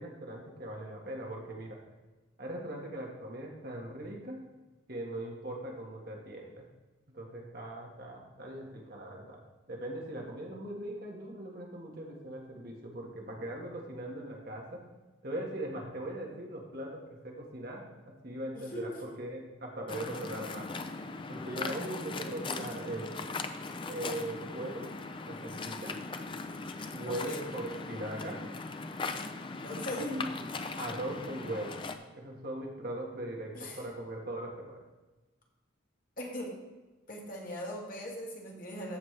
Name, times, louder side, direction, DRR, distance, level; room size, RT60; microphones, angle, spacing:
voice 1, 0.0-1.8 2.4-4.4 4.9-6.6 7.1-9.4 9.7-14.8 15.2-17.9 18.2-20.7 21.3-23.1 23.8-24.9 25.3-25.9 26.9-28.4 30.0-30.3 30.8-31.8 32.1-34.8, right 1 dB, 50° right, 0 dB, 1.5 m, -40 dB
voice 2, 18.5-19.2 21.5-22.6 27.0-28.1 29.6-30.2 33.5-33.8 36.2-36.5 37.1-39.0, equal, 45° left, -1 dB, 1.8 m, -41 dB
Waves surf, 19.9-32.0, left 3 dB, 25° left, 0.4 m, -39 dB
14.5 x 5.4 x 3.3 m, 1.2 s
head